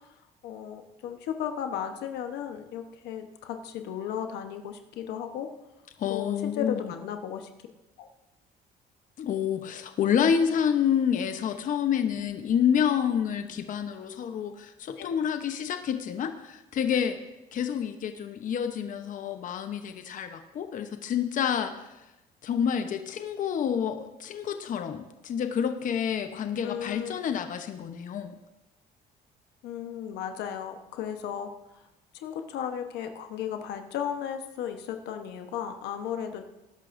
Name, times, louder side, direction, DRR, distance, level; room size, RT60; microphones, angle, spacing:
voice 1, 0.4-5.5 6.1-7.5 8.0-8.1 15.0-15.1 26.6-27.2 29.6-31.5 32.1-36.5, left 9 dB, 85° left, 6 dB, 1.0 m, -35 dB
voice 2, 6.0-6.9 9.2-17.2 17.5-21.7 22.4-28.4, left 8 dB, 50° left, 7 dB, 0.9 m, -28 dB
19.0 x 11.0 x 2.6 m, 0.99 s
cardioid pair, 110°, 17 cm